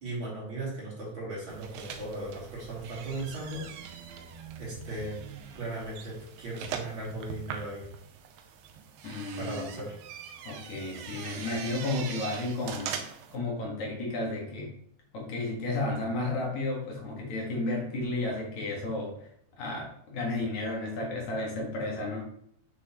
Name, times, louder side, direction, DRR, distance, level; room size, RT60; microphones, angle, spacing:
voice 1, 0.0-3.6 4.6-5.2 5.5-7.9 9.4-10.0, right 2 dB, 35° right, -6 dB, 3.3 m, -37 dB
sound 1, 1.5-13.4, right 7 dB, 80° right, 2.4 m, -42 dB
voice 2, 9.0-9.7 10.4-12.9 13.3-14.7 15.1-19.1 19.6-22.2, left 2 dB, 55° left, -2 dB, 2.8 m, -32 dB
7.7 x 6.4 x 3.0 m, 0.70 s
omnidirectional pair, 4.3 m